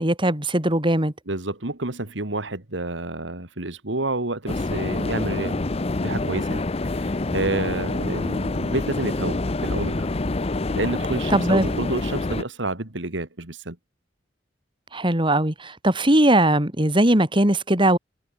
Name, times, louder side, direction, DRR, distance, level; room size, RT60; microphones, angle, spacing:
voice 1, 0.0-1.1 11.3-11.7 14.9-18.0, right 1 dB, 25° right, 3.6 m, -20 dB
voice 2, 1.3-5.6 6.0-10.1 10.7-13.8, right 2 dB, 75° right, 2.5 m, -29 dB
sound 1, 4.5-12.4, left 2 dB, 35° left, 0.7 m, -26 dB
head